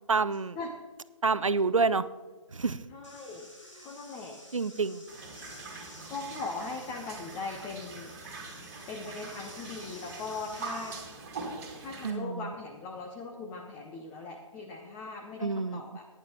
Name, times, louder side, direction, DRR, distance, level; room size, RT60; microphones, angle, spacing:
voice 1, 0.1-0.6 1.2-2.0 2.5-2.8 4.5-5.0 12.0-12.5 15.4-15.8, right 4 dB, 70° right, 15 dB, 0.6 m, -28 dB
voice 2, 2.9-3.5 3.8-4.4 6.1-8.1 8.9-11.0 11.8-16.1, left 3 dB, 10° left, 1 dB, 0.6 m, -39 dB
sound 1, 3.0-11.0, left 1 dB, 70° left, 4.4 m, -51 dB
sound 2, 5.1-12.1, right 4 dB, 30° right, 2.1 m, -43 dB
16.0 x 10.0 x 3.1 m, 1.3 s
figure-of-eight pair, 140°, 17 cm